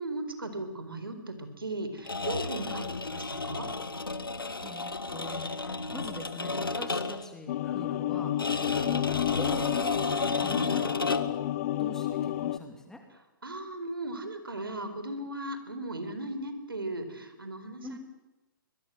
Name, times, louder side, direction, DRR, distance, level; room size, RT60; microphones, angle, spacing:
voice 1, 0.0-3.7 8.7-9.0 13.4-18.0, right 2 dB, 85° right, 9 dB, 4.5 m, -37 dB
sound 1, 2.0-7.3 8.4-11.5, left 3 dB, 90° left, 1.7 m, -33 dB
voice 2, 4.3-8.4 8.8-10.0 10.4-11.0 11.8-13.0 17.8-18.0, left 2 dB, 5° left, 4 dB, 2.8 m, -44 dB
sound 2, 7.5-12.6, left 12 dB, 45° left, 0.8 m, -30 dB
23.0 x 21.0 x 7.8 m, 1.0 s
figure-of-eight pair, 125°, 12 cm